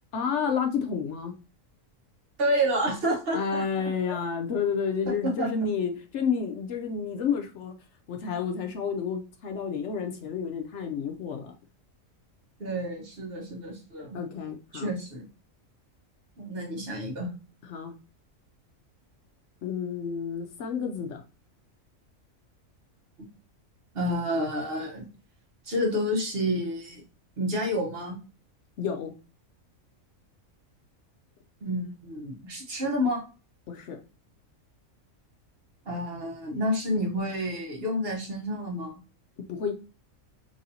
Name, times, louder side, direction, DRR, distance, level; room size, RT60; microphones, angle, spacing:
voice 1, 0.1-1.3 3.3-7.7 8.1-11.5 14.1-14.9 17.7-17.9 19.6-21.2 28.8-29.1 33.7-34.0 39.5-39.7, left 6 dB, 65° left, 4 dB, 0.8 m, -30 dB
voice 2, 2.4-3.6 4.1-4.2 5.1-5.5 12.6-14.2 14.7-15.3 16.4-17.3 23.9-25.1 25.6-27.0 27.4-28.2 31.6-33.2 35.9-39.0, equal, 50° right, 0 dB, 1.2 m, -29 dB
4.0 x 3.1 x 2.7 m, 0.34 s
omnidirectional pair, 1.4 m